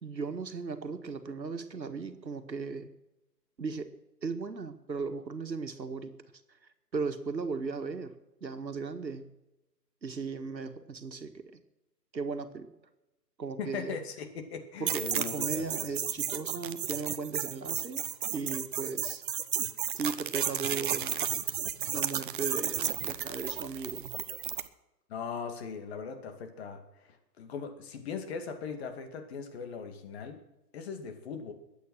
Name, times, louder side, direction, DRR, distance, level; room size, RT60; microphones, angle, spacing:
voice 1, 0.0-2.9 3.6-3.9 4.2-6.1 6.9-8.1 8.4-9.3 10.0-11.6 12.1-12.7 13.4-14.0 14.8-18.0 18.3-19.2 19.9-21.3 21.9-24.2, right 4 dB, 85° right, 8 dB, 1.8 m, -37 dB
voice 2, 13.6-15.7 25.1-30.4 30.7-31.5, left 6 dB, 40° left, 6 dB, 2.2 m, -39 dB
sound 1, 14.9-24.7, right 9 dB, 30° right, 0.7 m, -33 dB
21.5 x 8.7 x 6.2 m, 0.97 s
figure-of-eight pair, 130°, 50 cm